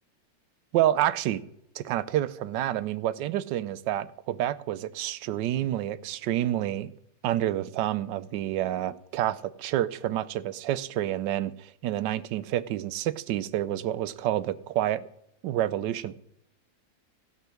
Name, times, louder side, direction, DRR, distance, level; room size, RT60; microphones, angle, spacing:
voice 1, 0.7-1.4 1.8-6.9 7.2-15.0 15.4-16.2, right 12 dB, 75° right, 1.2 m, -28 dB
16.0 x 5.6 x 6.4 m
omnidirectional pair, 2.0 m